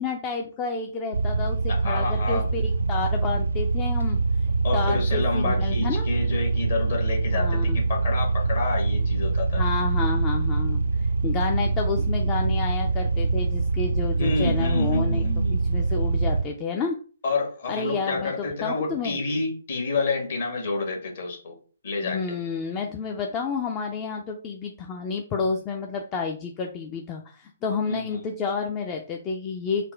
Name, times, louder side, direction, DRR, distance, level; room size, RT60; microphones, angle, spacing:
voice 1, 0.0-4.2 4.7-6.1 7.3-7.8 9.5-10.8 11.2-15.2 15.5-17.0 17.7-19.2 22.0-29.9, left 5 dB, 20° left, 2 dB, 0.4 m, -30 dB
sound 1, 1.1-16.4, right 3 dB, 75° right, 0.4 m, -24 dB
voice 2, 1.7-2.4 4.6-9.6 14.2-15.6 17.2-21.6 21.8-22.4 27.9-28.0, left 3 dB, 55° left, 0 dB, 1.4 m, -29 dB
4.0 x 2.1 x 3.3 m, 0.39 s
figure-of-eight pair, 130°, 0 cm